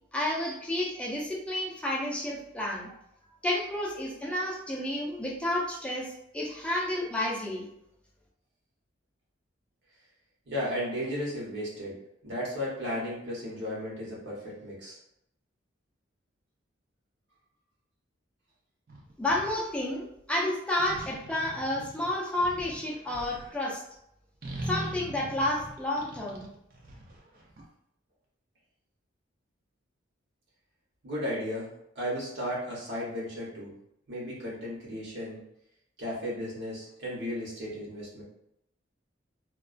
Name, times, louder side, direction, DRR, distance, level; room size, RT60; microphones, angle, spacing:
voice 1, 0.1-2.9 3.4-7.7 19.2-23.8 24.6-26.5, left 1 dB, 5° left, -3 dB, 0.4 m, -31 dB
voice 2, 10.5-11.9 12.2-15.0 31.0-31.7 31.9-33.7 34.1-35.4 36.0-38.2, equal, 65° right, -5 dB, 0.9 m, -34 dB
sound 1, 18.9-19.6 20.8-23.5 24.4-27.6, right 1 dB, 50° right, 0.5 m, -41 dB
2.3 x 2.2 x 2.4 m, 0.77 s
head